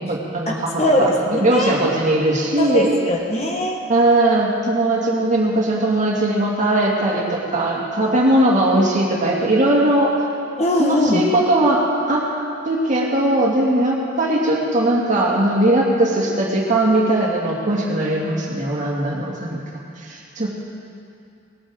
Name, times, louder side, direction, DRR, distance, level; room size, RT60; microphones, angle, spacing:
voice 1, 0.0-2.9 3.9-10.2 10.8-12.3 12.7-19.6 20.0-20.5, right 1 dB, 40° right, -3 dB, 2.3 m, -19 dB
voice 2, 0.8-1.8 2.6-3.8 10.6-11.2, left 1 dB, 35° left, 0 dB, 1.4 m, -20 dB
18.5 x 14.0 x 3.8 m, 2.5 s
head